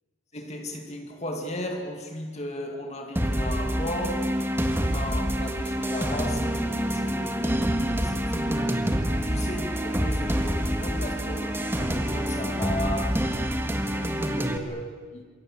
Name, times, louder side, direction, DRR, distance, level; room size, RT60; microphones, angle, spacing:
voice 1, 0.3-8.9 9.2-15.2, left 1 dB, 35° left, 2.1 m, -36 dB
sound 1, 3.2-14.6, equal, 10° right, 1.7 m, -27 dB
27.5 x 22.5 x 8.7 m
head